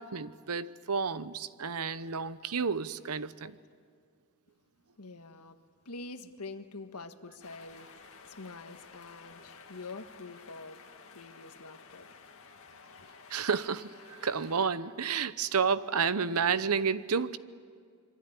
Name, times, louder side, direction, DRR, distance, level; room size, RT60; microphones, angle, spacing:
voice 1, 0.0-3.6 13.3-17.4, right 6 dB, 75° right, 0.9 m, -31 dB
voice 2, 5.0-5.6 5.8-7.9 8.2-10.8 11.1-12.2 13.0-13.1, left 3 dB, 85° left, 1.6 m, -46 dB
sound 1, 7.4-14.6, left 5 dB, 65° left, 2.2 m, -53 dB
25.5 x 24.0 x 9.7 m
head